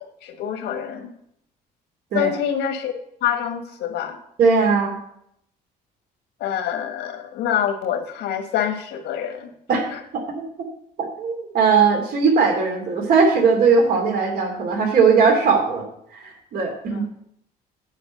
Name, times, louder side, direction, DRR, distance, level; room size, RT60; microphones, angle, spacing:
voice 1, 0.2-1.1 2.1-2.9 3.2-4.2 6.4-9.5 9.9-10.0 16.9-17.1, left 9 dB, 80° left, 6 dB, 1.6 m, -26 dB
voice 2, 4.4-5.0 9.7-10.4 11.0-15.9 16.1-17.1, right 5 dB, 60° right, 2 dB, 2.9 m, -19 dB
10.0 x 4.9 x 7.6 m, 0.73 s
cardioid pair, 110°, 17 cm